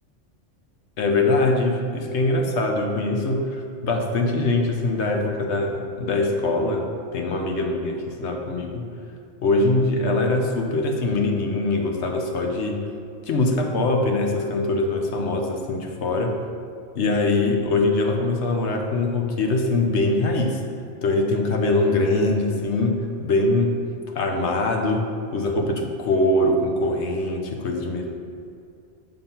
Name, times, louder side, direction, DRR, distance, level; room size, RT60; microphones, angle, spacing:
voice 1, 1.0-8.9 9.4-12.8 13.3-16.3 16.9-20.6 21.0-23.7 24.1-25.1 25.3-28.2, left 2 dB, 65° left, 2 dB, 1.0 m, -23 dB
6.8 x 3.8 x 5.7 m, 2.4 s
omnidirectional pair, 1.3 m